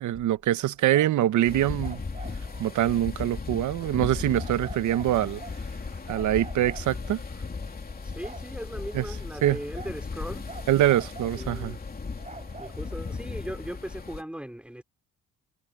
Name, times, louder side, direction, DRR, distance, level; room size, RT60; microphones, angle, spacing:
voice 1, 0.0-2.0 2.6-5.4 6.1-7.2 8.9-9.0 9.4-9.6 10.7-11.8, right 13 dB, 75° right, 1.0 m, -24 dB
sound 1, 0.8-3.0 3.8-4.0 4.4-5.7 6.1-7.2 7.6-8.5 8.8-9.1 9.4-10.1 10.5-11.6 11.9-13.6, right 3 dB, 25° right, 4.8 m, -47 dB
sound 2, 1.4-14.2, left 4 dB, 30° left, 3.2 m, -37 dB
voice 2, 8.0-10.7 11.3-11.8 12.3-14.8, equal, 5° right, 3.8 m, -39 dB
cardioid pair, 90°, 30 cm